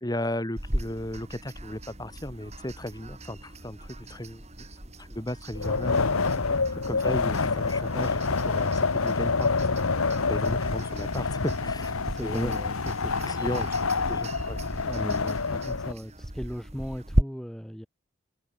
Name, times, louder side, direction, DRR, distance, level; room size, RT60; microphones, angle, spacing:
voice 1, 0.0-4.4 5.0-6.2 6.7-9.5 10.3-12.5 13.3-14.6, left 1 dB, 20° left, 2.1 m, -35 dB
sound 1, 0.6-17.2, equal, 30° right, 3.8 m, -36 dB
Wind, 5.5-15.9, left 4 dB, 90° left, 1.2 m, -27 dB
voice 2, 6.3-6.6 12.0-13.5 13.7-13.9 14.9-17.9, equal, ahead, 1.9 m, -38 dB
head